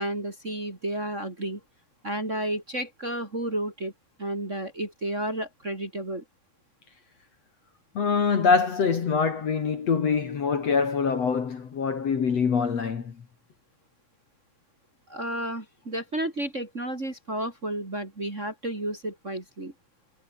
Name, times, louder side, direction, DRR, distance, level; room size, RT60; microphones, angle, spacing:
voice 1, 0.0-1.6 2.0-3.9 4.2-6.2 15.1-19.7, right 1 dB, 20° right, 2.9 m, -32 dB
voice 2, 7.9-13.2, left 5 dB, 45° left, 3.1 m, -24 dB
omnidirectional pair, 4.3 m